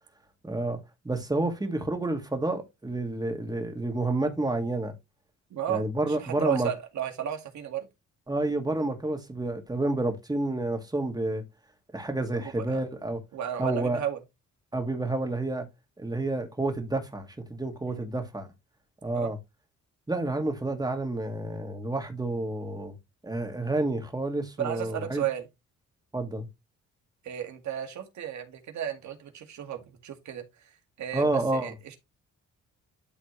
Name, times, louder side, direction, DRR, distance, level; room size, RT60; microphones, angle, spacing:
voice 1, 0.4-0.8 1.0-4.9 5.7-6.7 8.3-11.4 11.9-13.2 13.6-14.0 14.7-15.7 16.0-18.5 19.0-19.4 20.1-23.0 23.2-25.2 26.1-26.5 31.1-31.7, right 2 dB, 15° right, 2.3 m, -29 dB
voice 2, 5.5-7.9 12.3-12.8 13.3-14.2 17.9-18.1 19.1-19.3 24.6-25.5 27.2-32.0, right 10 dB, 65° right, 2.1 m, -34 dB
12.0 x 4.1 x 3.2 m
cardioid pair, 90°, 30 cm